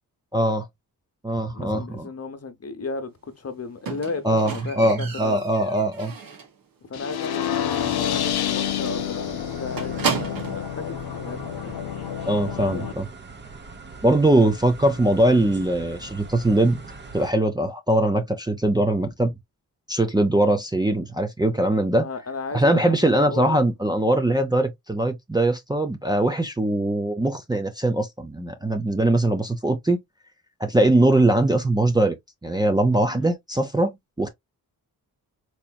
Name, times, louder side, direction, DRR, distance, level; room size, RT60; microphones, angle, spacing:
voice 1, 0.3-0.7 1.2-2.1 4.2-6.1 12.3-13.1 14.0-16.8 17.1-19.3 19.9-22.0 22.5-30.0 30.6-32.1 32.4-34.3, right 1 dB, 10° right, 0.6 m, -21 dB
voice 2, 1.5-5.4 6.9-12.0 14.4-14.6 22.0-23.6 31.3-31.6 33.1-33.3, left 4 dB, 40° left, 0.9 m, -35 dB
Squeak, 3.9-6.6 7.0-7.4 7.6-7.7 8.1-8.2 8.5-8.6 8.9-10.7 11.5-11.6, right 5 dB, 65° right, 1.2 m, -32 dB
sound 1, 6.9-12.9, left 10 dB, 85° left, 0.7 m, -28 dB
sound 2, 7.8-17.3, right 4 dB, 30° right, 0.9 m, -42 dB
4.4 x 2.9 x 2.3 m
cardioid pair, 85°, 37 cm